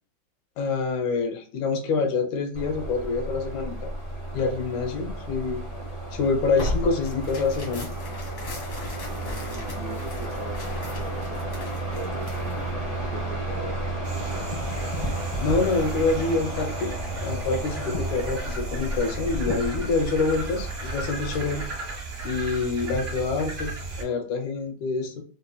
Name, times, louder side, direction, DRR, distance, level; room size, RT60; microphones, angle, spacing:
voice 1, 0.6-3.9 4.3-5.6 6.1-7.9 15.4-16.9 17.2-21.6 22.2-25.2, left 4 dB, 80° left, 5 dB, 2.0 m, -26 dB
sound 1, 2.5-22.0, right 1 dB, 35° left, 0.6 m, -33 dB
Tearing, 6.5-12.7, left 1 dB, 55° left, 0.9 m, -36 dB
voice 2, 9.0-11.7 11.9-12.6 13.1-14.5, right 3 dB, 75° right, -1 dB, 1.6 m, -41 dB
sound 2, 14.0-24.0, right 3 dB, 45° right, 0.8 m, -35 dB
5.2 x 2.1 x 2.3 m, 0.41 s
omnidirectional pair, 3.3 m